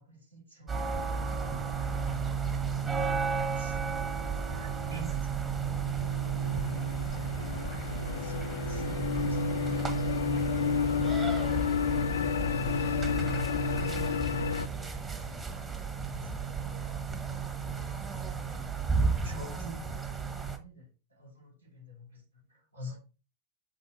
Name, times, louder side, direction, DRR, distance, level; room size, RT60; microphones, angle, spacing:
voice 1, 0.0-2.2 2.7-3.0 3.5-3.8 4.5-6.1 6.4-9.5 16.0-16.5 18.5-20.1 20.4-22.2 22.5-23.0, left 1 dB, 80° right, 2.4 m, -48 dB
sound 1, 0.7-20.6, right 6 dB, 15° right, 1.2 m, -33 dB
sound 2, 5.5-14.7, left 7 dB, 65° left, 0.4 m, -31 dB
6.4 x 5.5 x 4.2 m
figure-of-eight pair, 90°, 0 cm